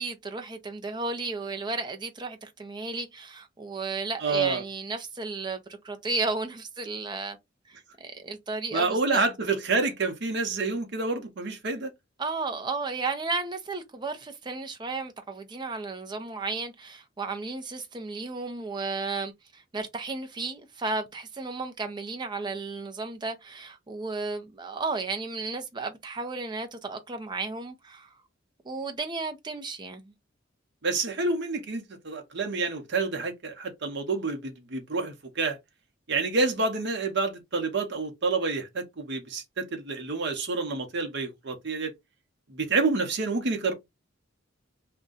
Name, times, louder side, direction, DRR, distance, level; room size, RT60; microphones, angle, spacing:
voice 1, 0.0-7.4 7.7-9.2 12.2-28.1 28.6-30.1, right 3 dB, 20° right, 0.5 m, -34 dB
voice 2, 4.2-4.6 8.7-11.9 30.8-35.6 36.1-41.9 42.5-43.7, right 3 dB, 60° right, 0.8 m, -28 dB
2.6 x 2.2 x 3.7 m
head